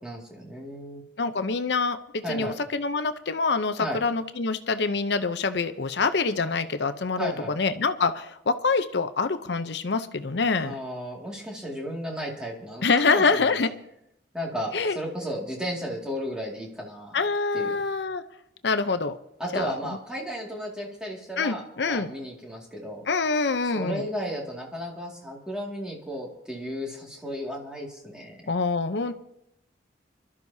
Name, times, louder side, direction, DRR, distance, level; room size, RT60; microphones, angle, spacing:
voice 1, 0.0-1.0 2.2-2.6 3.8-4.0 7.2-7.6 10.6-13.6 14.3-17.2 17.5-17.8 19.4-23.0 23.7-28.4, equal, 5° right, -2 dB, 2.2 m, -34 dB
voice 2, 1.2-10.8 12.8-13.7 14.7-15.0 17.1-18.2 18.6-19.2 19.5-19.7 21.4-22.1 23.1-24.1 28.5-29.1, left 4 dB, 70° left, 9 dB, 0.7 m, -25 dB
24.5 x 12.5 x 2.8 m, 0.81 s
head